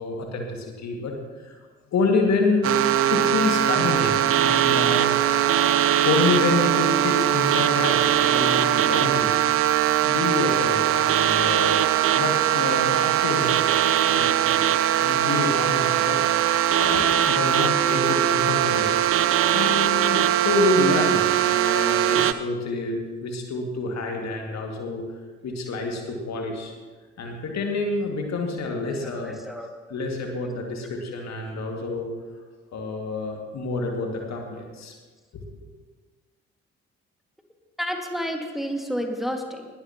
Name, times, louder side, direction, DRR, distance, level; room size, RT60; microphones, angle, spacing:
voice 1, 0.0-1.6 1.9-2.7 3.1-5.2 6.0-9.4 10.0-11.8 12.1-14.5 15.0-16.2 16.8-19.0 19.5-25.0 25.4-26.7 27.2-29.4 29.9-32.1 32.7-34.9, left 3 dB, 55° left, 2 dB, 2.1 m, -27 dB
sound 1, 2.6-22.3, right 11 dB, 40° right, 0.6 m, -21 dB
voice 2, 29.0-29.7 37.8-39.7, equal, ahead, 2 dB, 2.0 m, -30 dB
20.0 x 12.5 x 3.0 m, 1.4 s
figure-of-eight pair, 40°, 33 cm